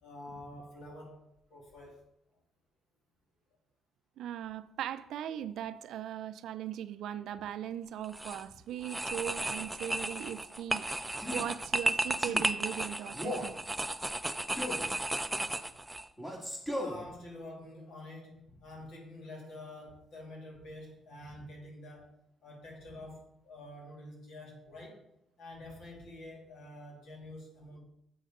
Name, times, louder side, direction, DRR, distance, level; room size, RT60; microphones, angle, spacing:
voice 1, 0.0-1.2 1.5-2.0 11.2-11.3 14.7-14.9 16.7-22.2 22.4-25.0 25.4-27.8, left 1 dB, 75° left, 2.6 m, -48 dB
voice 2, 4.2-13.6, right 10 dB, 80° right, 0.4 m, -39 dB
sound 1, 8.0-8.4 8.8-16.0, right 1 dB, 10° right, 0.4 m, -34 dB
Male speech man speaking, 11.1-11.5 12.2-12.5 13.1-13.5 14.6-14.9 16.2-17.0, left 1 dB, 10° left, 2.1 m, -37 dB
7.8 x 6.5 x 3.7 m
cardioid pair, 90°, 0 cm